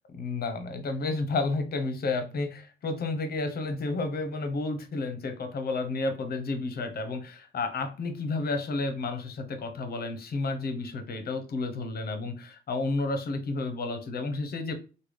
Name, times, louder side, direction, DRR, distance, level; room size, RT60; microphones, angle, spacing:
voice 1, 0.1-14.7, left 3 dB, 50° left, 0.8 m, -31 dB
3.3 x 2.2 x 3.2 m
cardioid pair, 90°, 20 cm